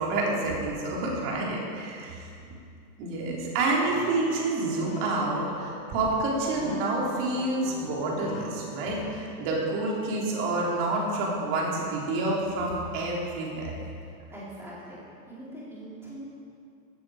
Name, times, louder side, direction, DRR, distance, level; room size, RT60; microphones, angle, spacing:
voice 1, 0.0-2.3 3.0-13.7, right 2 dB, 30° right, -3 dB, 3.6 m, -28 dB
sound 1, 3.9-9.2, left 4 dB, 45° left, 2.3 m, -42 dB
voice 2, 14.0-15.0 15.3-16.2, right 1 dB, 5° right, -8 dB, 4.2 m, -43 dB
17.5 x 15.0 x 5.0 m, 2.4 s
supercardioid pair, 165°, 49 cm